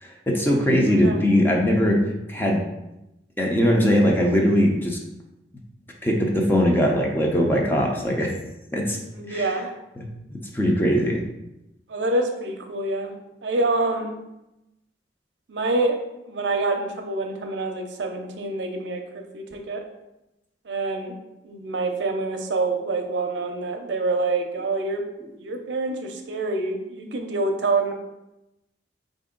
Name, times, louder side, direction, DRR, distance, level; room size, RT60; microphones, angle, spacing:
voice 1, 0.0-2.0 2.3-2.6 3.4-5.0 6.0-8.3 8.7-9.0 9.3-9.5 10.0-11.2, equal, 10° left, 0 dB, 0.6 m, -21 dB
voice 2, 0.9-1.2 9.1-9.7 11.9-13.1 13.4-14.2 15.5-16.0 16.3-19.8 20.6-21.1 21.4-25.0 25.4-27.9, right 2 dB, 80° right, 4 dB, 0.6 m, -26 dB
4.5 x 2.6 x 3.7 m, 0.92 s
head